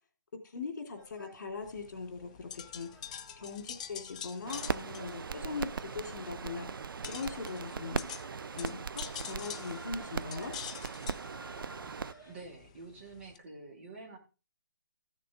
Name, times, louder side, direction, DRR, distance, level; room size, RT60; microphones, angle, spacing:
voice 1, 0.5-2.9 3.4-6.8 7.1-8.1 8.6-10.5, left 4 dB, 55° left, 4 dB, 3.1 m, -40 dB
sound 1, 1.0-12.3, right 1 dB, 15° right, 5.9 m, -57 dB
sound 2, 1.6-13.4, left 8 dB, 20° left, 0.4 m, -47 dB
sound 3, 4.5-12.1, right 5 dB, 85° right, 0.5 m, -39 dB
voice 2, 12.2-14.2, right 3 dB, 35° right, 1 dB, 2.7 m, -48 dB
14.5 x 6.6 x 3.7 m, 0.32 s
hypercardioid pair, 170°, 11 cm